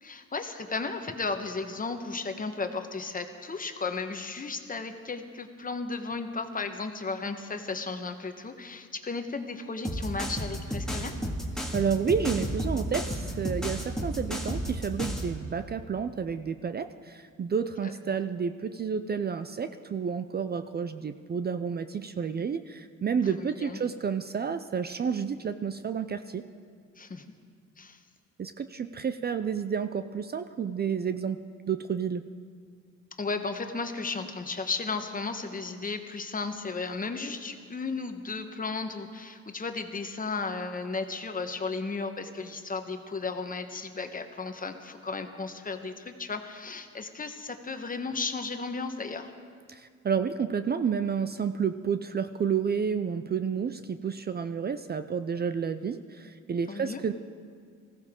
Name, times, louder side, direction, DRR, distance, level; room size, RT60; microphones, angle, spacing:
voice 1, 0.0-11.1 17.8-17.9 23.4-23.8 27.0-27.2 27.8-28.0 33.2-49.3 56.7-57.0, left 4 dB, 30° left, 7 dB, 1.2 m, -34 dB
sound 1, 9.8-15.3, equal, ahead, 1.9 m, -32 dB
voice 2, 11.7-26.4 28.4-32.2 49.7-57.1, right 6 dB, 35° right, 10 dB, 0.5 m, -30 dB
20.0 x 15.5 x 3.7 m, 2.2 s
cardioid pair, 90°, 30 cm